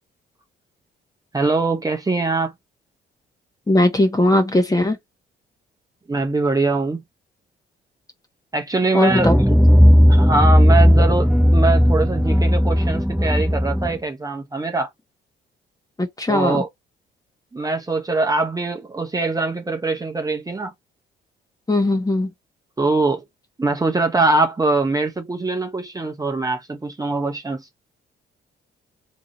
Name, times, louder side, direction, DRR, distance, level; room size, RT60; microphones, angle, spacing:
voice 1, 1.3-2.5 6.1-7.0 8.5-9.3 10.1-14.9 16.3-16.7 17.5-20.7 22.8-23.2 23.6-27.7, right 3 dB, 20° right, 1.0 m, -22 dB
voice 2, 3.7-5.0 8.9-9.4 16.0-16.6 21.7-22.3, left 1 dB, 20° left, 1.3 m, -18 dB
sound 1, 9.1-14.0, equal, ahead, 0.4 m, -15 dB
3.6 x 3.1 x 3.9 m
cardioid pair, 90°, 20 cm